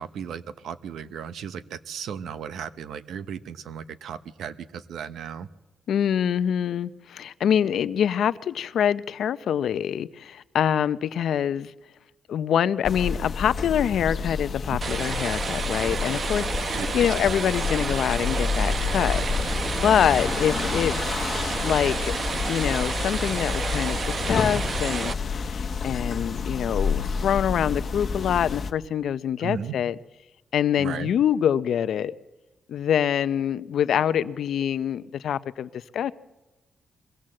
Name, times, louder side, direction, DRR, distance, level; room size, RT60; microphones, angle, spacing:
voice 1, 0.0-5.5 16.7-17.1 29.4-29.7 30.8-31.1, right 7 dB, 80° right, 0.9 m, -36 dB
voice 2, 5.9-11.7 12.3-21.0 21.6-22.1 22.5-30.0 30.5-32.1 32.7-36.1, left 9 dB, 75° left, 0.6 m, -25 dB
sound 1, 12.8-28.7, left 5 dB, 40° left, 1.0 m, -29 dB
sound 2, 14.8-25.1, right 4 dB, 40° right, 0.9 m, -30 dB
22.5 x 16.5 x 7.6 m
cardioid pair, 120°, 0 cm